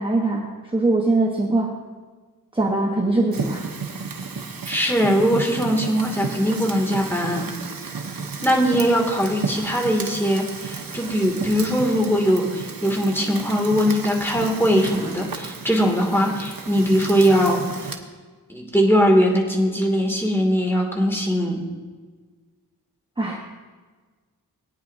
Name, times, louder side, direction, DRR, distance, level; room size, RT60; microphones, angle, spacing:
voice 1, 0.0-1.7 2.5-3.7 23.2-23.4, right 2 dB, 15° right, -1 dB, 1.2 m, -22 dB
Fire, 3.3-18.0, right 5 dB, 65° right, 1.1 m, -33 dB
voice 2, 4.7-7.5 8.4-17.9 18.5-21.6, equal, 5° left, -1 dB, 2.4 m, -21 dB
18.5 x 9.6 x 2.8 m, 1.4 s
wide cardioid pair, 60°, 37 cm